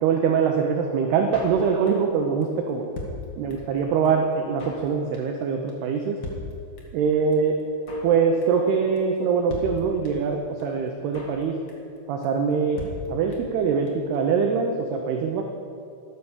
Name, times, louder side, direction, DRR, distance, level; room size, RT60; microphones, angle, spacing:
voice 1, 0.0-2.9 3.4-6.2 6.9-7.6 8.0-11.6 12.1-12.8 13.1-15.4, right 6 dB, 85° right, 3 dB, 2.3 m, -23 dB
Drum kit, 1.3-2.1 2.4-2.5 2.7-3.8 4.0-4.1 4.3-4.9 5.1-5.4 5.7-5.8 6.0-6.1 6.2-7.1 7.3-7.4 7.6-8.2 8.4-8.7 9.0-9.1 9.2-9.3 9.5-10.3 10.6-10.7 10.9-11.4 11.7-12.0 12.2-12.3 12.5-12.6 12.8-13.6 13.9-14.0 14.1-14.2, left 2 dB, 75° left, 1.2 m, -37 dB
12.5 x 11.5 x 7.1 m, 2.6 s
omnidirectional pair, 5.8 m